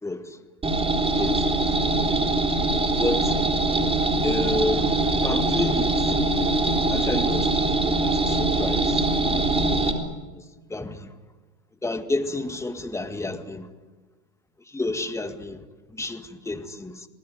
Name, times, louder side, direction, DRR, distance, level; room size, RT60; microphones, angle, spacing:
voice 1, 0.0-0.4 1.2-1.8 3.0-3.4 4.2-5.9 6.9-9.0 10.3-10.4 10.7-11.1 11.8-13.7 14.7-15.6 15.9-17.0, left 2 dB, 5° left, 1.9 m, -30 dB
sound 1, 0.6-9.9, right 2 dB, 15° right, 3.7 m, -23 dB
27.0 x 20.0 x 9.4 m
hypercardioid pair, 115°, 44 cm